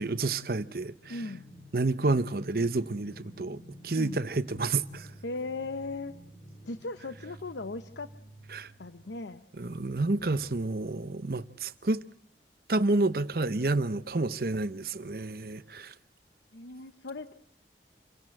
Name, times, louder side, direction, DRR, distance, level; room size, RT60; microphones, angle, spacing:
voice 1, 0.0-1.1 1.7-5.1 8.5-8.7 9.6-12.0 12.7-15.9, right 2 dB, 55° right, 0.8 m, -29 dB
sound 1, 1.0-9.4, equal, 40° left, 1.7 m, -51 dB
voice 2, 1.1-1.4 4.0-4.2 5.2-6.1 6.6-8.1 8.8-9.4 16.5-17.4, left 3 dB, 85° left, 0.9 m, -37 dB
28.0 x 17.0 x 7.8 m
head